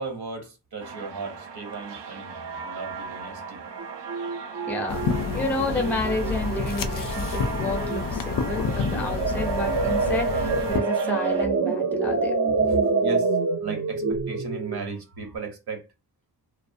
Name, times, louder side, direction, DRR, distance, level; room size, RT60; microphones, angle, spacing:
voice 1, 0.0-3.6 7.3-7.4 12.5-13.3 13.6-15.9, right 4 dB, 65° right, 0.9 m, -36 dB
sound 1, 0.8-11.5, right 5 dB, 90° right, 0.6 m, -37 dB
sound 2, 3.8-6.6 6.9-7.2 7.5-8.0 8.4-15.4, right 4 dB, 45° right, 0.5 m, -27 dB
voice 2, 4.7-12.4, left 2 dB, 5° left, 0.5 m, -31 dB
sound 3, 4.9-10.8, left 5 dB, 55° left, 0.4 m, -29 dB
2.5 x 2.0 x 2.5 m
wide cardioid pair, 95°, 41 cm